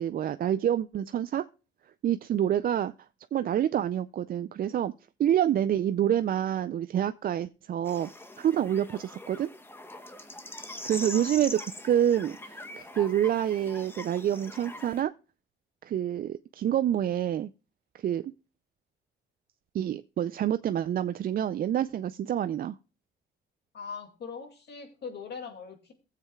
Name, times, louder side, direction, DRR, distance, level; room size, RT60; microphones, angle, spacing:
voice 1, 0.0-1.5 2.0-2.9 3.3-4.9 5.2-8.1 8.4-9.5 10.8-15.1 15.8-17.5 18.0-18.3 19.7-22.8, right 10 dB, 50° right, 0.4 m, -27 dB
sound 1, 7.9-15.0, left 1 dB, 10° left, 0.9 m, -42 dB
voice 2, 11.0-11.4 23.7-25.9, left 5 dB, 60° left, 2.2 m, -41 dB
16.0 x 7.5 x 2.3 m
cardioid pair, 90°, 20 cm